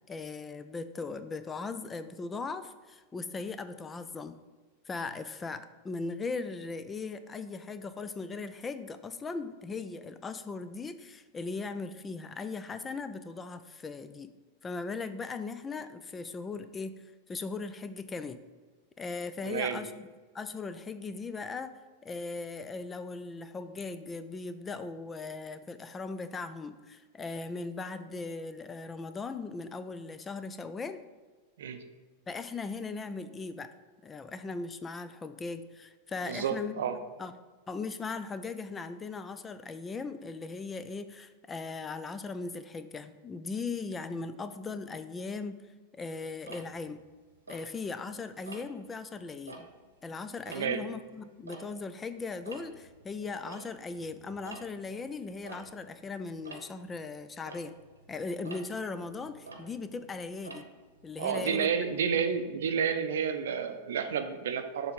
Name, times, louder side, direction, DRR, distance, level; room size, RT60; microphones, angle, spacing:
voice 1, 0.1-4.4 4.9-14.3 14.6-17.0 17.3-18.4 19.0-20.1 20.3-21.7 22.0-31.0 32.3-33.7 34.0-36.8 37.2-37.3 37.7-45.7 45.9-47.0 47.5-49.7 50.0-57.7 58.1-60.6 61.0-61.7, left 4 dB, 15° left, 11 dB, 0.4 m, -38 dB
voice 2, 19.4-19.8 31.6-31.8 36.3-37.0 50.5-50.8 61.2-64.9, right 7 dB, 60° right, 8 dB, 0.6 m, -30 dB
Tick-tock, 46.4-48.1 48.5-48.9 49.3-52.1 52.3-62.4, right 3 dB, 75° right, 1.0 m, -50 dB
6.8 x 3.6 x 5.3 m, 1.4 s
figure-of-eight pair, 90°, 0 cm